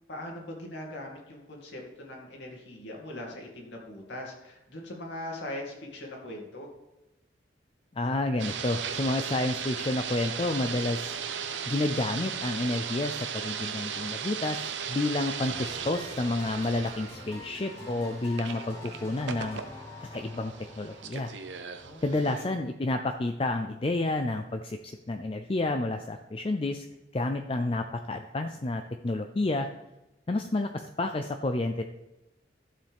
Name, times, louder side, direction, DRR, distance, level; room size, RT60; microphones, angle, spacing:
voice 1, 0.1-6.7 21.8-22.6, left 1 dB, 80° left, -1 dB, 2.5 m, -41 dB
voice 2, 8.0-11.2 11.7-18.8 19.0-19.6 20.0-21.3 22.0-26.8 27.1-29.7 30.3-31.8, left 2 dB, 30° left, 6 dB, 0.4 m, -30 dB
sound 1, 8.4-22.5, right 7 dB, 90° right, 0.8 m, -37 dB
sound 2, 15.4-22.3, left 2 dB, 15° left, 1.8 m, -46 dB
13.0 x 7.5 x 3.5 m, 0.95 s
head